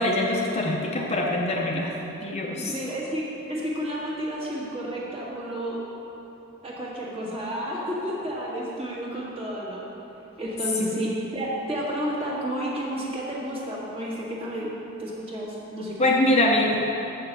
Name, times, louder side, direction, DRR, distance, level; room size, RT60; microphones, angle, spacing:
voice 1, 0.0-2.0 2.2-2.8 10.8-10.9 16.0-16.8, left 1 dB, 30° left, -1 dB, 0.6 m, -23 dB
voice 2, 2.5-5.9 6.6-9.8 10.4-14.7 15.0-16.1, equal, 25° right, -5 dB, 1.6 m, -31 dB
7.4 x 6.0 x 6.6 m, 3.0 s
head